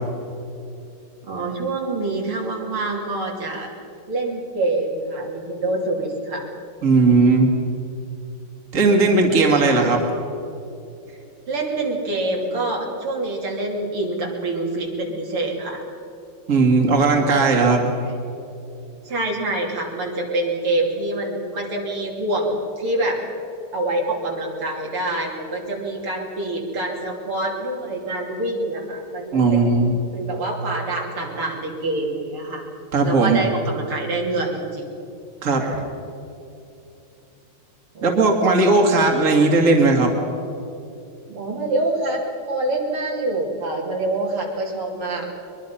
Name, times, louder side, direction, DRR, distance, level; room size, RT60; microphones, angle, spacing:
voice 1, 1.2-3.7 4.1-6.4 9.1-10.0 11.1-11.2 11.5-15.8 19.0-23.2 23.7-29.7 30.1-32.7 33.0-34.9 35.6-35.8 37.9-38.1 41.3-42.2 42.5-45.3, right 2 dB, 80° right, -1 dB, 3.8 m, -26 dB
voice 2, 6.8-7.5 8.7-10.0 16.5-17.9 29.3-30.0 32.9-33.4 35.4-35.6 38.0-40.2, right 3 dB, 40° right, 1 dB, 2.4 m, -17 dB
22.5 x 22.0 x 5.7 m, 2.7 s
omnidirectional pair, 2.4 m